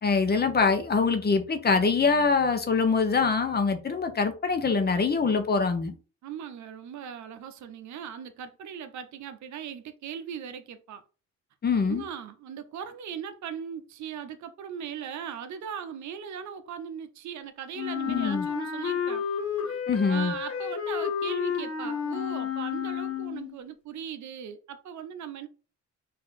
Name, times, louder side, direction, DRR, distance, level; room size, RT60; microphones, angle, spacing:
voice 1, 0.0-5.9 11.6-12.0 18.1-18.5 19.9-20.3, left 4 dB, 35° left, 0.8 m, -24 dB
voice 2, 6.2-11.0 11.9-19.2 19.7-19.8 20.1-25.5, right 8 dB, 70° right, 0.7 m, -39 dB
Wind instrument woodwind instrument, 17.7-23.5, left 7 dB, 50° left, 1.2 m, -31 dB
4.1 x 2.7 x 4.0 m
cardioid pair, 90°, 30 cm